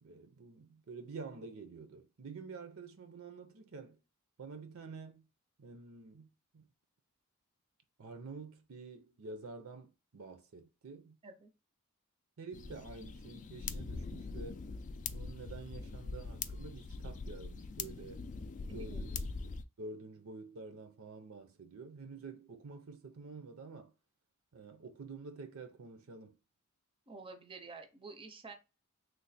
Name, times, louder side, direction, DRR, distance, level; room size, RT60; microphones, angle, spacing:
voice 1, 0.0-4.0 4.4-5.3 5.6-6.7 8.0-11.2 12.4-14.6 15.1-18.2 18.7-19.5 19.8-23.9 24.5-26.4, right 4 dB, 70° right, 0.6 m, -49 dB
sound 1, 12.5-19.6, left 4 dB, 35° left, 0.3 m, -42 dB
voice 2, 18.7-19.1 27.1-28.5, right 4 dB, 25° right, 0.5 m, -49 dB
3.3 x 2.1 x 4.0 m
head